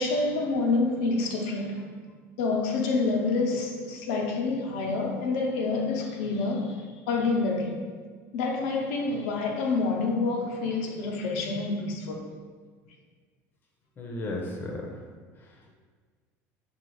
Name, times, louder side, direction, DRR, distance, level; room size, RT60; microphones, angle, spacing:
voice 1, 0.0-1.8 2.4-6.8 7.1-7.7 8.3-12.3, left 3 dB, 90° left, 0 dB, 0.6 m, -27 dB
voice 2, 14.0-15.0 15.4-15.6, left 2 dB, 30° left, 0 dB, 0.7 m, -35 dB
5.1 x 2.3 x 3.1 m, 1.5 s
cardioid pair, 130°, 7 cm